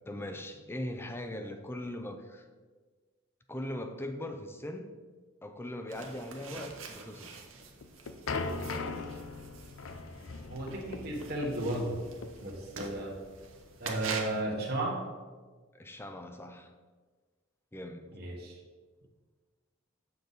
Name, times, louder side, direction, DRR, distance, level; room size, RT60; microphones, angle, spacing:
voice 1, 0.1-2.5 3.5-4.9 5.4-7.4 15.7-16.7 17.7-18.2, left 1 dB, 10° left, 6 dB, 0.6 m, -40 dB
sound 1, 5.9-14.4, right 4 dB, 70° right, 1.0 m, -45 dB
sound 2, 7.6-14.5, left 3 dB, 75° left, 0.6 m, -40 dB
voice 2, 10.5-12.0 12.4-13.2 13.8-15.0 18.1-18.6, right 1 dB, 50° right, -3 dB, 1.4 m, -34 dB
6.9 x 6.8 x 4.0 m, 1.4 s
head